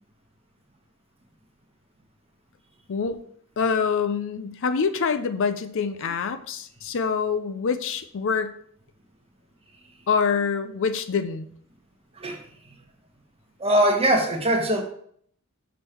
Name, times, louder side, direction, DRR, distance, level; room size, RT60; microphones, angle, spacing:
voice 1, 2.9-3.2 3.6-8.5 10.1-11.5, left 5 dB, 60° left, 11 dB, 0.5 m, -25 dB
voice 2, 13.6-14.8, right 1 dB, 25° right, 3 dB, 1.1 m, -21 dB
6.3 x 5.1 x 4.4 m, 0.63 s
head